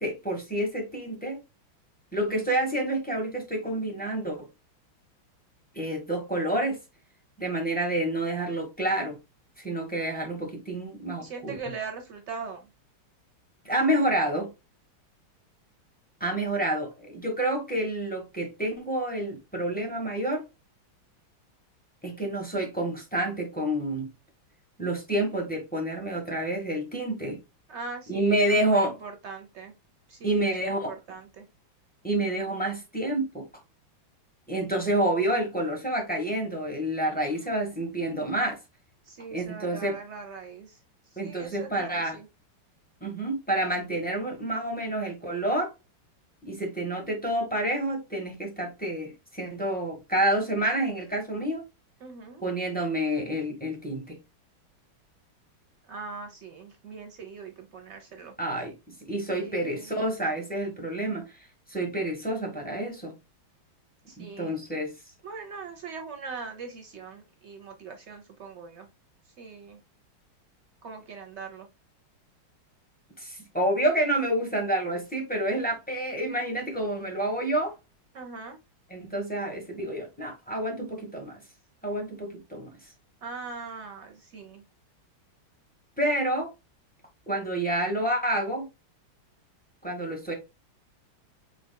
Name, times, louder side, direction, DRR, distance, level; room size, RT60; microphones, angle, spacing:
voice 1, 0.0-1.4 2.1-4.5 5.7-6.8 7.4-9.2 9.6-11.6 13.6-14.5 16.2-20.4 22.0-24.1 24.8-27.4 28.1-28.9 30.2-30.9 32.0-33.5 34.5-38.6 39.3-40.0 41.2-42.2 43.0-45.7 46.4-51.6 52.4-54.2 58.4-58.7 59.1-61.2 61.7-63.1 64.2-64.9 73.2-77.7 78.9-81.4 81.8-82.7 86.0-86.5 87.3-88.7 89.8-90.3, right 1 dB, 5° left, 0.7 m, -28 dB
voice 2, 11.2-12.7 27.7-29.7 30.1-31.5 37.3-37.5 39.0-40.8 41.1-42.3 52.0-52.4 55.8-58.3 59.4-60.0 64.1-64.6 65.2-68.9 69.4-69.8 70.8-71.7 78.1-78.6 83.2-84.6, right 4 dB, 85° right, 0.6 m, -41 dB
4.7 x 3.9 x 2.2 m
omnidirectional pair, 2.2 m